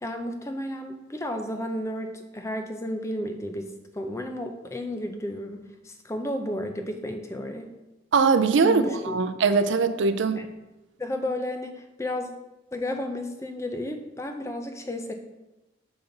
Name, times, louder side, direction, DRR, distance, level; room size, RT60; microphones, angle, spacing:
voice 1, 0.0-7.7 8.6-9.2 10.4-10.5 11.0-12.3 12.7-15.1, left 1 dB, 15° left, 5 dB, 0.5 m, -32 dB
voice 2, 8.1-10.4, right 4 dB, 75° right, 11 dB, 0.4 m, -21 dB
5.8 x 5.5 x 3.9 m, 1.0 s
head